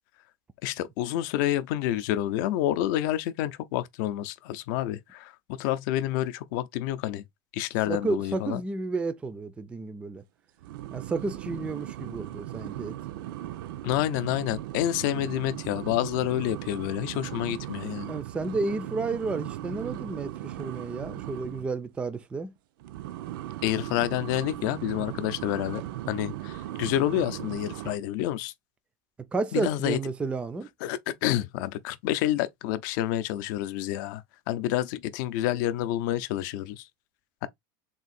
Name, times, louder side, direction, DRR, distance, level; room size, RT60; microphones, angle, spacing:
voice 1, 0.6-7.2 7.5-8.6 13.8-18.1 23.6-25.8 26.1-28.5 29.5-30.0 30.8-36.9 37.4-37.5, left 13 dB, 60° left, 0.5 m, -28 dB
voice 2, 7.9-10.2 10.9-13.0 18.1-22.5 29.3-30.7, right 3 dB, 10° right, 0.3 m, -31 dB
sound 1, 10.6-21.7 22.8-28.0, right 14 dB, 75° right, 0.4 m, -38 dB
3.6 x 2.5 x 4.1 m
supercardioid pair, 145°, 11 cm